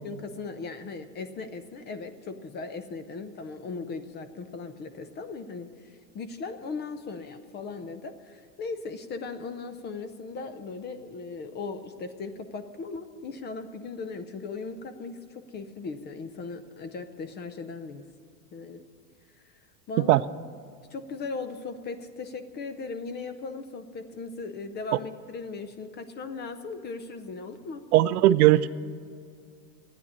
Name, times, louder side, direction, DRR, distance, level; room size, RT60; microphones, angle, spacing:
voice 1, 0.0-18.0 18.5-18.8 19.9-20.2 20.9-27.8, left 4 dB, 20° left, 10 dB, 0.6 m, -38 dB
voice 2, 27.9-28.7, right 15 dB, 65° right, 14 dB, 0.6 m, -18 dB
13.0 x 9.8 x 8.6 m, 2.3 s
supercardioid pair, 130°, 49 cm